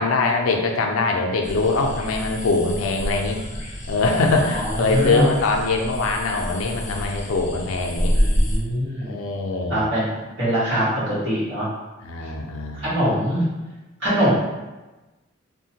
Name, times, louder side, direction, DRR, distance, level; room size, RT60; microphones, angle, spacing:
voice 1, 0.0-3.4 3.9-8.2 9.1-9.9 12.0-12.9, left 3 dB, 90° left, 2 dB, 0.4 m, -22 dB
sound 1, 1.4-8.6, equal, 35° left, 0.5 m, -27 dB
voice 2, 4.3-5.3 8.1-9.1 9.7-11.7 12.8-13.5 14.0-14.3, equal, 60° right, -11 dB, 1.2 m, -23 dB
2.8 x 2.2 x 2.7 m, 1.1 s
head